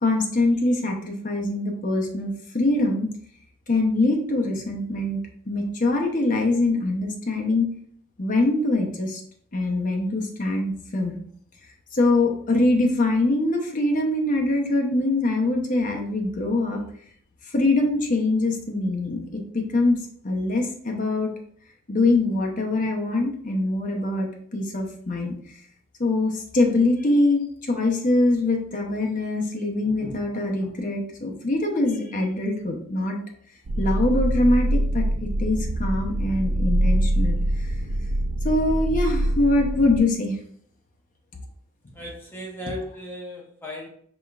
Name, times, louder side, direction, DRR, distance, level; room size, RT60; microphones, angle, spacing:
voice 1, 0.0-3.1 3.7-5.2 5.5-7.7 8.2-9.2 9.5-11.2 11.9-16.8 17.5-21.3 21.9-25.4 26.0-33.2 33.8-37.7 38.4-40.4 42.7-42.8, left 2 dB, 40° left, 1 dB, 0.8 m, -23 dB
sound 1, 33.7-40.0, right 1 dB, 85° right, 0.5 m, -24 dB
voice 2, 41.9-43.9, equal, 10° left, -2 dB, 0.8 m, -37 dB
5.0 x 3.6 x 2.4 m, 0.62 s
head